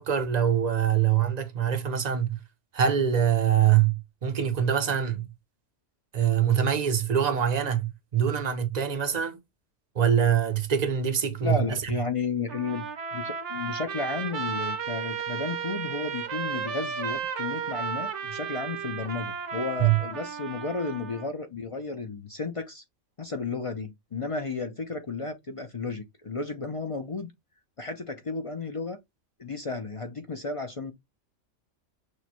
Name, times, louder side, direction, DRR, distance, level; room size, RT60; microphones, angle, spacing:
voice 1, 0.0-2.4 2.7-5.3 6.1-9.4 9.9-11.6 19.8-20.0, right 9 dB, 45° right, 0.6 m, -24 dB
voice 2, 11.4-12.9 13.1-22.8 23.2-27.3 27.8-29.0 29.4-30.9, left 4 dB, 45° left, 0.4 m, -33 dB
Trumpet, 12.5-21.3, right 7 dB, 65° right, 1.1 m, -34 dB
6.3 x 2.1 x 2.9 m
omnidirectional pair, 1.3 m